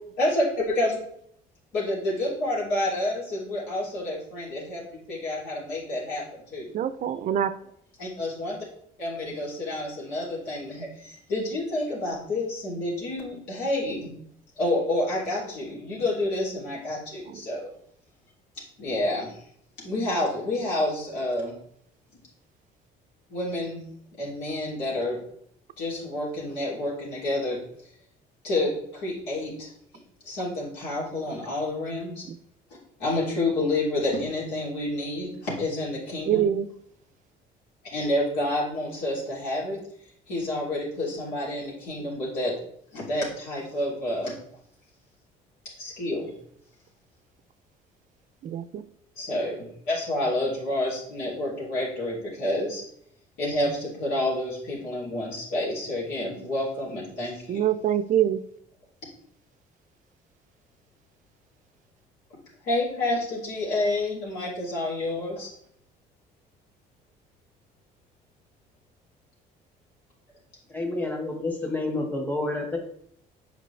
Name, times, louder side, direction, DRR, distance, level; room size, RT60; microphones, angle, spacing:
voice 1, 0.2-1.0 1.7-6.7 8.0-8.6 9.0-14.1 14.6-17.7 18.8-19.4 19.8-21.5 23.3-23.8 24.2-25.2 25.8-27.9 28.4-29.7 30.2-32.3 33.0-36.5 37.9-39.8 40.3-42.5 42.9-44.4 45.6-46.3 49.2-52.8 53.4-57.6 62.6-65.5, left 1 dB, 90° left, -5 dB, 3.0 m, -29 dB
voice 2, 6.7-7.5 36.3-36.7 48.4-48.8 57.5-58.4, right 10 dB, 50° right, 13 dB, 0.4 m, -24 dB
voice 3, 70.7-72.8, left 2 dB, 10° left, 1 dB, 1.5 m, -29 dB
7.6 x 5.0 x 3.3 m, 0.68 s
cardioid pair, 110°, 17 cm